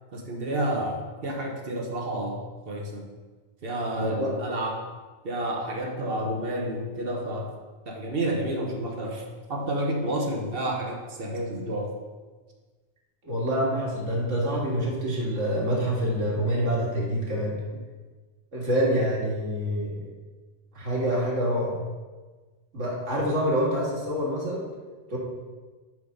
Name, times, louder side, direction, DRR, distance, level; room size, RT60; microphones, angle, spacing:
voice 1, 0.1-3.0 3.6-4.9 5.2-7.5 7.9-9.2 9.5-11.9, right 1 dB, 55° right, 1 dB, 1.2 m, -30 dB
voice 2, 4.0-4.3 13.2-17.5 18.5-20.0 20.7-21.8 22.7-24.6 25.1-25.2, equal, 90° right, -4 dB, 2.0 m, -26 dB
7.6 x 3.9 x 5.3 m, 1.3 s
omnidirectional pair, 1.2 m